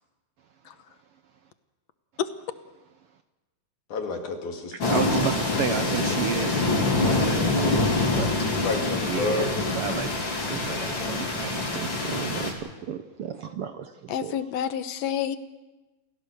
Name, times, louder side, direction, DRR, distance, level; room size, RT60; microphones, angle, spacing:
voice 1, 3.9-5.2 5.8-6.5 8.5-9.5, left 3 dB, 85° left, 3 dB, 3.9 m, -31 dB
voice 2, 4.7-8.4 9.0-10.2 10.5-14.4, right 8 dB, 70° right, 8 dB, 1.4 m, -32 dB
sound 1, 4.8-12.5, left 2 dB, 40° left, 3.8 m, -25 dB
voice 3, 14.1-15.4, left 9 dB, 70° left, 11 dB, 2.0 m, -28 dB
28.0 x 16.5 x 6.7 m, 1.2 s
omnidirectional pair, 3.4 m